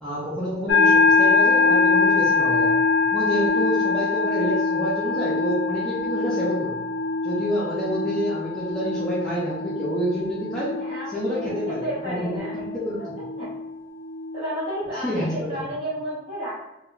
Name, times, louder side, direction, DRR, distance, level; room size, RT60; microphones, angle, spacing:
voice 1, 0.0-2.8 3.1-6.8 7.2-10.7 11.1-13.2 14.9-15.7, equal, 5° left, -9 dB, 0.4 m, -28 dB
sound 1, 0.7-14.6, left 4 dB, 75° left, 0.4 m, -23 dB
voice 2, 10.7-12.6 13.0-13.1 13.4-13.5 14.3-16.7, equal, 35° right, -9 dB, 1.4 m, -32 dB
2.8 x 2.1 x 2.3 m, 0.96 s
head